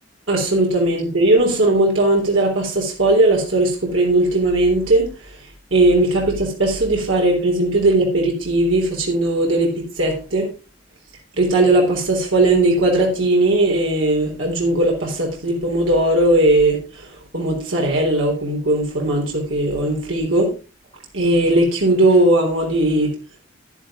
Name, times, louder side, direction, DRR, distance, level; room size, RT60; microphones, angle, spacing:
voice 1, 0.3-5.1 5.7-10.5 11.4-16.8 17.3-20.5 21.1-23.1, right 2 dB, 80° right, 0 dB, 3.6 m, -18 dB
11.0 x 11.0 x 3.7 m, 0.31 s
head